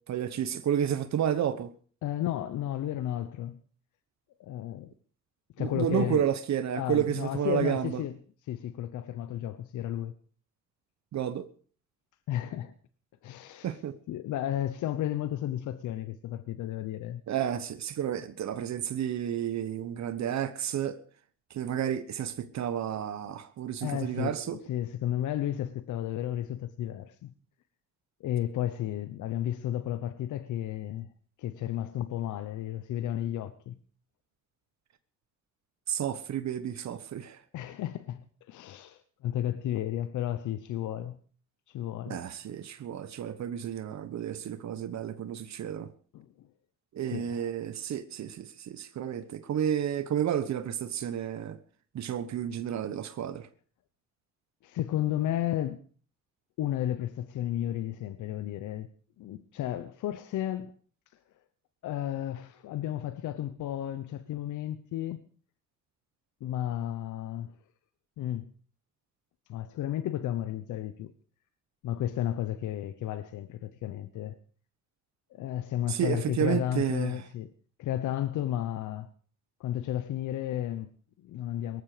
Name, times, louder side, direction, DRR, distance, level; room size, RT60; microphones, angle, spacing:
voice 1, 0.1-1.7 5.6-8.0 11.1-11.5 13.6-14.0 17.3-21.0 21.5-24.6 35.9-37.4 42.1-45.9 46.9-51.6 51.9-53.5 75.9-77.2, right 9 dB, 65° right, 1.2 m, -31 dB
voice 2, 2.0-3.6 4.4-4.9 5.6-6.2 6.7-8.1 8.5-10.1 12.3-12.7 13.2-13.8 14.1-17.2 23.8-27.3 28.2-31.1 31.4-33.8 37.5-41.2 41.7-42.2 46.1-46.5 47.1-47.5 54.6-55.8 56.6-58.9 59.2-60.7 61.8-65.2 66.4-67.5 68.2-68.5 69.5-71.1 71.8-74.4 75.3-77.5 77.8-79.1 79.6-81.8, left 12 dB, 80° left, 0.9 m, -33 dB
18.5 x 14.5 x 5.0 m
cardioid pair, 90°, 30 cm